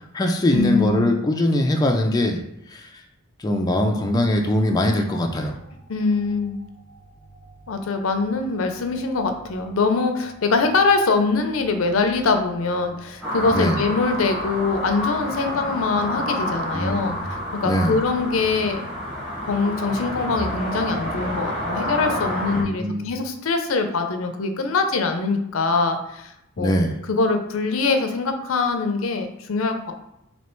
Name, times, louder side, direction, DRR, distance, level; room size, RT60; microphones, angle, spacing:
voice 1, 0.0-3.0 3.4-5.6 13.5-13.8 16.7-17.3 17.7-18.0 22.5-23.1 26.6-26.9, left 1 dB, 20° left, 2 dB, 0.3 m, -22 dB
voice 2, 0.5-1.2 5.9-6.6 7.7-18.8 19.4-26.7 27.1-29.9, left 4 dB, 70° left, 6 dB, 0.5 m, -23 dB
sound 1, 4.1-20.4, right 2 dB, 45° right, 1.3 m, -49 dB
sound 2, 13.2-22.6, equal, 5° right, 1.1 m, -29 dB
3.2 x 2.9 x 4.3 m, 0.81 s
head